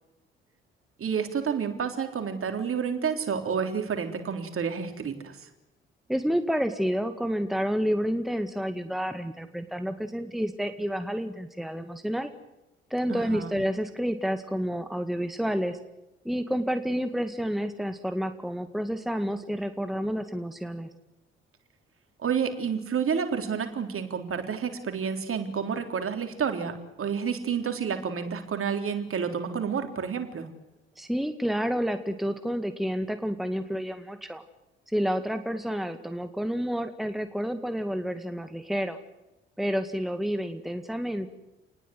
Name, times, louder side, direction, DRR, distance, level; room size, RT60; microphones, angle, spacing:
voice 1, 1.0-5.5 13.1-13.5 22.2-30.5, right 6 dB, 45° right, 6 dB, 3.7 m, -30 dB
voice 2, 6.1-12.3 12.9-15.8 16.2-20.9 31.0-34.4 34.9-39.0 39.6-41.3, equal, ahead, 9 dB, 1.9 m, -29 dB
28.5 x 20.0 x 7.9 m, 0.95 s
figure-of-eight pair, 45°, 31 cm